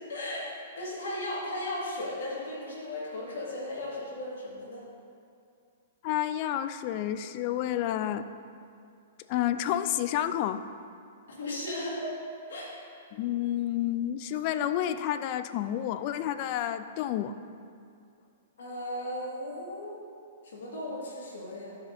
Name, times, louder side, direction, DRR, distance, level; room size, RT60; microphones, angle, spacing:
voice 1, 0.1-0.5 0.8-4.8 11.3-12.2 12.5-12.7 18.6-20.0 20.5-21.8, left 1 dB, 75° left, -5 dB, 1.8 m, -36 dB
voice 2, 6.0-8.3 9.3-10.6 13.1-17.4, left 11 dB, 45° left, 12 dB, 0.3 m, -30 dB
11.5 x 4.8 x 2.6 m, 2.4 s
hypercardioid pair, 125°, 0 cm